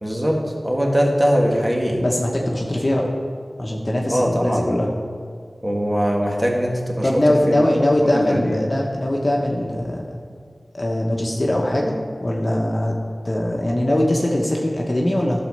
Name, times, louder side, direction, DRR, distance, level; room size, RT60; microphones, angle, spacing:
voice 1, 0.0-2.0 4.1-4.7 5.6-7.2 7.5-7.7 8.1-8.7, equal, 15° right, -1 dB, 1.9 m, -21 dB
voice 2, 2.0-3.1 3.6-4.9 7.0-10.2 10.7-13.0 13.2-15.4, left 1 dB, 40° left, -1 dB, 1.2 m, -21 dB
11.5 x 4.4 x 6.7 m, 2.1 s
wide cardioid pair, 40°, 0 cm